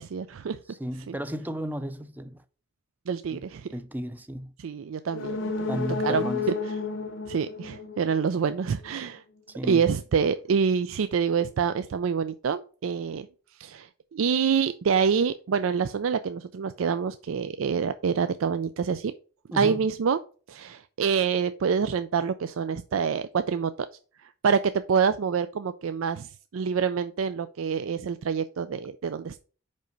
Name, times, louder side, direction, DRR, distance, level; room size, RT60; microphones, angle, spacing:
voice 1, 0.0-0.6 1.1-1.2 3.1-3.7 4.6-6.2 6.6-6.7 7.3-9.2 9.6-13.3 13.6-19.1 19.5-20.2 20.5-23.9 24.2-29.4, right 6 dB, 90° right, 0.4 m, -26 dB
voice 2, 0.7-2.4 3.3-3.4 3.7-4.5 5.7-6.5 9.5-9.9 19.5-19.8, equal, 10° right, 0.4 m, -34 dB
sound 1, 5.1-8.8 9.1-9.2, left 4 dB, 70° left, 0.8 m, -32 dB
5.4 x 5.0 x 5.2 m
head